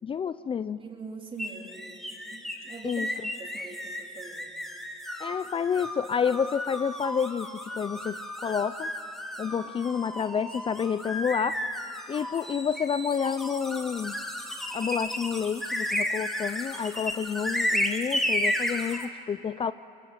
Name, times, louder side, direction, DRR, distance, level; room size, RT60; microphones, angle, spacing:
voice 1, 0.0-0.8 2.8-3.1 5.2-8.9 9.4-11.6 12.1-14.2 14.7-19.7, left 7 dB, 30° left, 14 dB, 0.5 m, -29 dB
voice 2, 0.8-4.6, right 4 dB, 30° right, 1 dB, 3.7 m, -43 dB
sound 1, 1.4-19.1, equal, ahead, 2.3 m, -33 dB
25.0 x 23.0 x 7.7 m, 2.6 s
cardioid pair, 110°, 17 cm